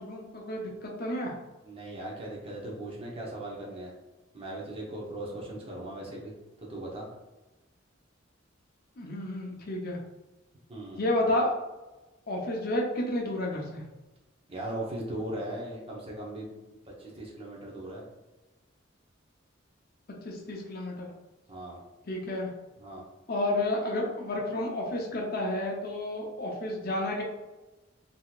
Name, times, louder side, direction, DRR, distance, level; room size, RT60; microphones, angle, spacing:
voice 1, 0.0-1.3 9.0-10.0 11.0-11.5 12.3-13.8 20.2-21.1 22.1-22.5 23.3-27.2, left 1 dB, 50° left, -1 dB, 0.6 m, -31 dB
voice 2, 1.6-3.9 4.3-6.3 6.6-7.1 10.7-11.0 14.5-16.6 16.8-18.0 21.5-21.8 22.8-23.1, right 1 dB, 30° right, -3 dB, 0.8 m, -38 dB
3.8 x 2.8 x 2.3 m, 1.1 s
head